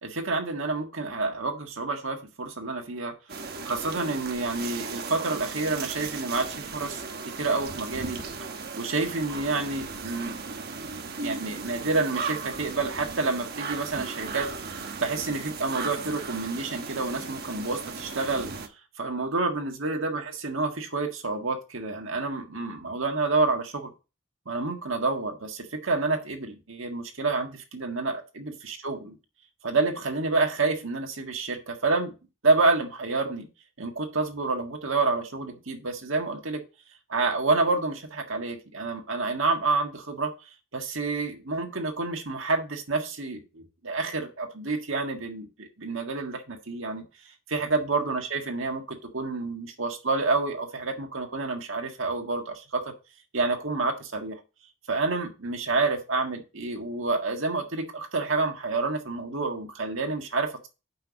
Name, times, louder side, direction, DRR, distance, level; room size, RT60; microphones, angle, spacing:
voice 1, 0.0-3.1 3.7-7.0 7.4-8.2 8.8-10.5 11.2-14.5 15.0-18.5 19.0-23.9 24.5-29.0 29.6-32.1 32.4-33.5 33.8-36.6 37.1-40.3 40.7-47.0 47.5-52.9 53.3-54.4 54.9-60.7, right 3 dB, 65° right, 3 dB, 1.7 m, -28 dB
sound 1, 3.3-18.7, right 4 dB, 45° right, 1.1 m, -36 dB
5.8 x 5.7 x 6.9 m, 0.30 s
head